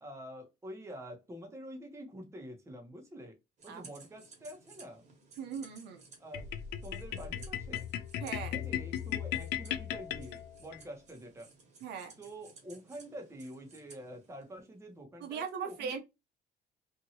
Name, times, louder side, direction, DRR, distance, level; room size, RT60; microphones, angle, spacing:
voice 1, 0.0-3.4 3.6-5.0 6.2-6.5 6.8-7.9 8.5-11.5 12.2-16.0, equal, 15° right, 1.1 m, -47 dB
sound 1, 3.6-14.8, right 4 dB, 45° right, 1.4 m, -58 dB
voice 2, 5.4-6.0 8.2-8.5 11.8-12.1 15.2-16.0, right 6 dB, 80° right, 0.8 m, -39 dB
sound 2, 6.3-10.8, left 10 dB, 90° left, 0.4 m, -37 dB
2.8 x 2.6 x 2.8 m
cardioid pair, 110°, 17 cm